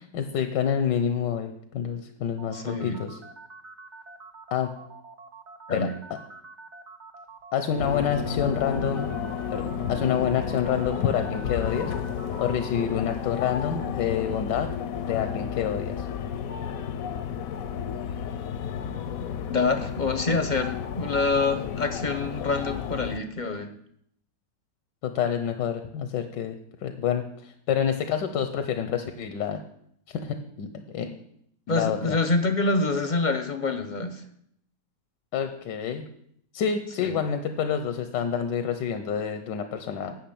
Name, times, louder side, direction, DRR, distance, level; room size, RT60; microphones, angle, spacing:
voice 1, 0.1-3.2 4.5-4.7 5.7-6.2 7.5-9.1 9.5-11.9 12.4-14.7 15.0-16.1 25.0-26.5 26.8-29.6 30.2-30.7 30.9-31.2 31.7-32.2 35.3-36.1 36.5-40.2, left 8 dB, 80° left, 7 dB, 1.5 m, -28 dB
sound 1, 2.4-13.0, right 4 dB, 50° right, 0.9 m, -46 dB
voice 2, 2.5-3.0 5.7-5.9 19.5-23.7 31.7-34.2 37.0-37.2, left 3 dB, 40° left, 7 dB, 0.7 m, -26 dB
sound 2, 7.8-23.2, left 7 dB, 65° left, 1.0 m, -32 dB
10.0 x 6.1 x 8.6 m, 0.71 s
omnidirectional pair, 1.9 m